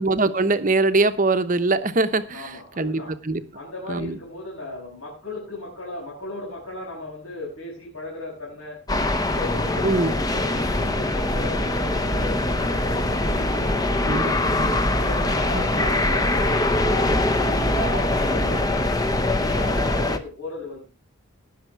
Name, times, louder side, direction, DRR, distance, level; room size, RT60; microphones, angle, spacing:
voice 1, 0.0-2.5 2.8-3.4 3.9-4.1 9.8-10.1 14.1-14.3 14.6-14.7 15.5-15.6, right 3 dB, 35° right, 0.9 m, -22 dB
voice 2, 2.3-3.1 3.5-8.8 9.2-14.4 14.8-18.6 19.3-20.8, left 2 dB, 80° left, 6.6 m, -36 dB
Mall Quiet Echoes, 8.9-20.2, left 1 dB, 15° left, 0.9 m, -23 dB
19.0 x 6.7 x 4.6 m
head